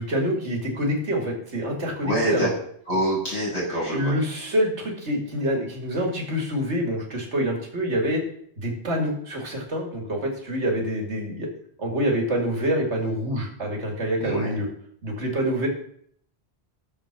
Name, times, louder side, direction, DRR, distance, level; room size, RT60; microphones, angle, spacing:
voice 1, 0.0-2.5 3.9-8.2 8.6-11.5 11.8-14.7 15.0-15.7, equal, 90° right, 1 dB, 2.6 m, -26 dB
voice 2, 2.0-2.5 2.9-4.1 14.2-14.5, equal, 75° left, -6 dB, 6.5 m, -26 dB
13.5 x 7.2 x 5.9 m, 0.64 s
omnidirectional pair, 1.1 m